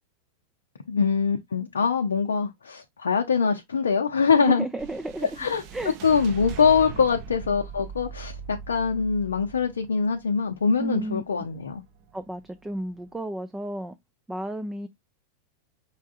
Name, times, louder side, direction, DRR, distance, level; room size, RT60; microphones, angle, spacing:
voice 1, 0.9-4.6 5.4-5.6 6.0-11.8, left 6 dB, 70° left, 0.6 m, -23 dB
voice 2, 4.3-5.3 5.7-6.0 10.8-11.2 12.1-14.0 14.3-14.9, right 1 dB, 10° right, 0.5 m, -32 dB
sound 1, 4.8-13.2, right 6 dB, 40° right, 0.8 m, -41 dB
5.5 x 3.5 x 2.4 m
figure-of-eight pair, 90°, 0 cm